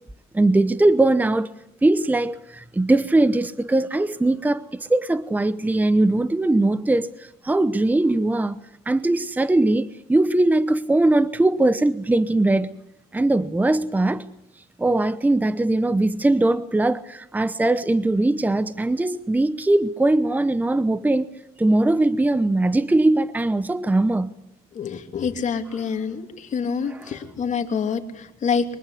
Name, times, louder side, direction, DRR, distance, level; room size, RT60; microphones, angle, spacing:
voice 1, 0.3-1.5 1.8-8.6 8.9-12.7 13.1-14.3 14.8-21.3 21.6-24.3 26.8-27.2, right 2 dB, 10° right, 0.9 m, -20 dB
voice 2, 24.8-26.2 26.5-28.6, left 6 dB, 45° left, 2.9 m, -26 dB
24.0 x 21.5 x 8.4 m
cardioid pair, 110°, 17 cm